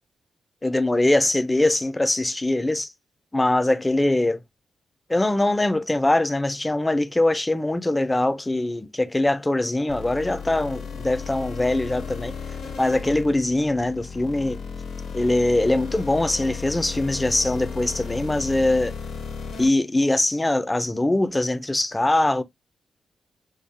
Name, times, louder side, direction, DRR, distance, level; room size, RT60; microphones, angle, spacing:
voice 1, 0.6-2.9 3.3-4.4 5.1-12.3 12.8-14.6 15.1-18.9 19.6-22.4, left 1 dB, 20° left, 0.3 m, -22 dB
sound 1, 9.9-19.7, left 6 dB, 75° left, 0.5 m, -35 dB
2.3 x 2.1 x 2.6 m
hypercardioid pair, 40°, 0 cm